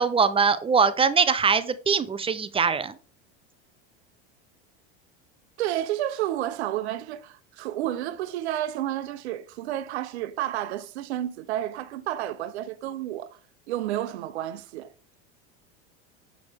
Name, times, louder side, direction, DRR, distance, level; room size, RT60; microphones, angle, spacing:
voice 1, 0.0-2.9, right 5 dB, 15° right, 0.5 m, -22 dB
voice 2, 5.6-13.3 13.7-14.9, right 13 dB, 90° right, 0.7 m, -31 dB
7.8 x 5.0 x 3.4 m
supercardioid pair, 105°, 32 cm